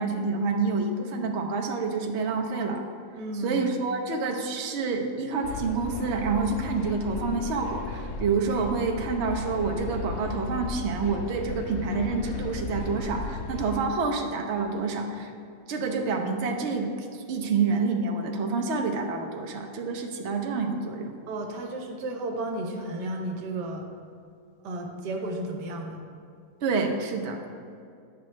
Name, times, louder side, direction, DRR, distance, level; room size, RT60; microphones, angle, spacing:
voice 1, 0.0-2.8 3.3-15.3 15.7-21.1 26.6-27.4, right 4 dB, 55° right, 2 dB, 0.9 m, -28 dB
voice 2, 3.1-3.6 21.3-23.9 24.6-26.0, right 1 dB, 85° right, 3 dB, 1.5 m, -33 dB
sound 1, 5.4-13.8, left 4 dB, 80° left, 0.6 m, -35 dB
10.5 x 6.1 x 3.2 m, 2.4 s
omnidirectional pair, 1.8 m